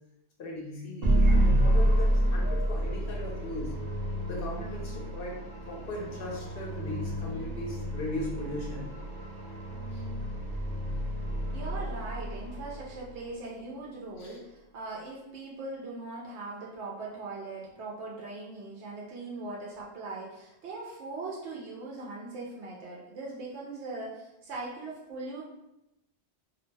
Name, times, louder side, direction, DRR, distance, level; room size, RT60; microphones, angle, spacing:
voice 1, 0.4-3.7 4.3-8.9 9.9-10.0 14.2-14.4, left 1 dB, 60° left, -3 dB, 0.9 m, -38 dB
sound 1, 1.0-13.2, right 1 dB, 50° right, 0.5 m, -29 dB
voice 2, 11.5-25.4, right 3 dB, 85° right, -4 dB, 0.9 m, -40 dB
2.5 x 2.0 x 3.2 m, 0.88 s
omnidirectional pair, 1.1 m